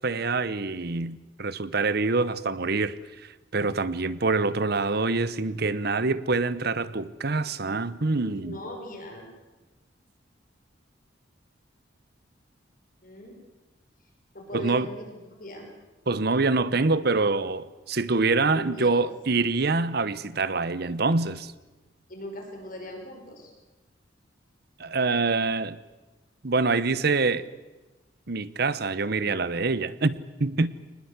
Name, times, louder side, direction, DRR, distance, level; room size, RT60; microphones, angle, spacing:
voice 1, 0.0-3.0 3.5-8.6 14.5-14.9 16.1-21.5 24.8-25.8 26.4-27.5 28.3-30.7, right 3 dB, 55° right, 1.0 m, -25 dB
voice 2, 8.2-9.3 13.0-13.3 14.3-15.7 18.4-19.1 22.1-23.5, left 1 dB, 45° left, 6.0 m, -40 dB
24.0 x 20.0 x 8.2 m
head